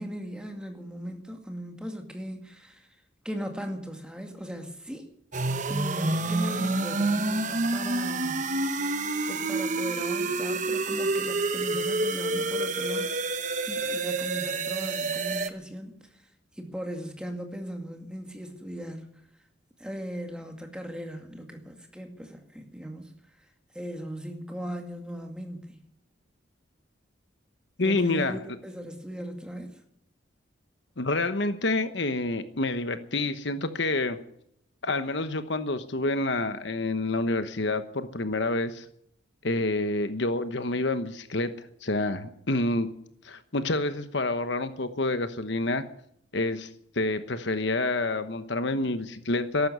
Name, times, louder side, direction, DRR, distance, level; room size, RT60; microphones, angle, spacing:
voice 1, 0.0-3.0 3.2-5.1 5.7-13.3 13.7-19.2 19.8-23.5 23.7-25.9 27.8-29.8, equal, 5° right, 2.2 m, -38 dB
sound 1, 5.3-15.5, right 3 dB, 40° right, 1.0 m, -28 dB
voice 2, 27.8-28.4 31.0-34.2 34.8-38.8 39.4-42.9 43.2-45.8 46.3-46.7 46.9-49.7, left 2 dB, 60° left, 1.1 m, -28 dB
14.0 x 12.0 x 8.1 m
head